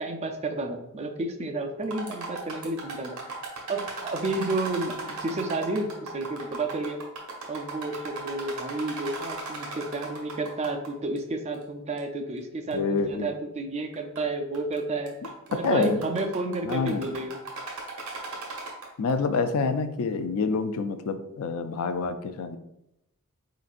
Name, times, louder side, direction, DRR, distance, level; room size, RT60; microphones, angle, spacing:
voice 1, 0.0-3.2 3.7-7.0 7.5-15.1 15.5-17.4, right 2 dB, 30° right, 5 dB, 0.4 m, -31 dB
sound 1, 1.8-10.9 11.2-11.3 12.0-12.1 12.7-12.8 13.9-14.2 14.5-14.8 15.1-19.1, right 3 dB, 70° right, 1.1 m, -37 dB
voice 2, 12.7-13.3 15.5-16.0 16.6-17.1 19.0-22.6, left 4 dB, 70° left, 9 dB, 0.4 m, -27 dB
4.3 x 3.9 x 2.4 m, 0.84 s
head